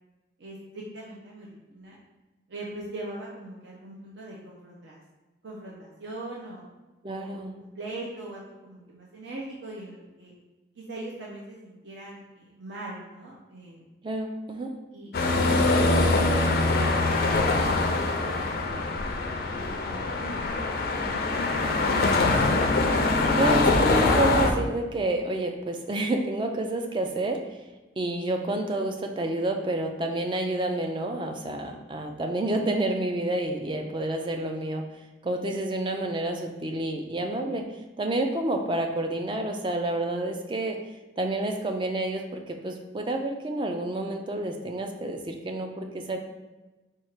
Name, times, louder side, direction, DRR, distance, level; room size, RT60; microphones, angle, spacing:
voice 1, 0.4-2.0 2.5-5.0 5.4-6.7 7.1-10.3 10.8-13.8 14.9-16.9 17.3-19.0 19.5-20.5 20.9-22.3, right 2 dB, 70° right, -4 dB, 0.6 m, -41 dB
voice 2, 7.0-7.6 14.0-14.7 23.4-27.4 28.0-34.8 35.2-37.6 38.0-40.8 41.2-46.2, right 1 dB, 25° right, 4 dB, 0.3 m, -29 dB
sound 1, 15.1-24.5, left 2 dB, 50° left, 0.4 m, -23 dB
4.5 x 2.4 x 4.4 m, 1.2 s
head